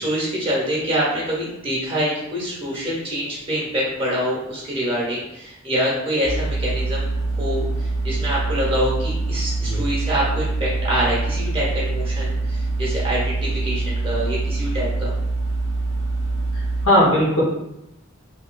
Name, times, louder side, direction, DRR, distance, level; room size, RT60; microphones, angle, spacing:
voice 1, 0.0-7.1 7.4-15.1, equal, 25° right, -6 dB, 1.1 m, -25 dB
sound 1, 6.2-16.9, right 2 dB, 60° right, 0.9 m, -24 dB
voice 2, 16.5-17.4, equal, 70° left, -8 dB, 0.8 m, -18 dB
3.1 x 3.0 x 2.3 m, 0.86 s
head